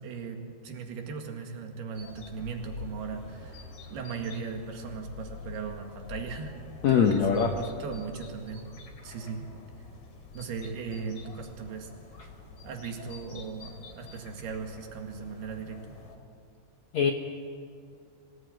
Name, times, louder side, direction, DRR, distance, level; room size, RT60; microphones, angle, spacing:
voice 1, 0.0-6.5 6.9-8.7 9.0-9.5 10.3-11.9 12.6-16.0, right 5 dB, 70° right, 3 dB, 4.0 m, -38 dB
sound 1, 1.9-16.2, left 3 dB, 40° left, 3.2 m, -46 dB
voice 2, 6.8-7.6 16.9-17.1, left 7 dB, 70° left, 3 dB, 1.7 m, -22 dB
25.0 x 18.5 x 9.3 m, 2.3 s
omnidirectional pair, 4.8 m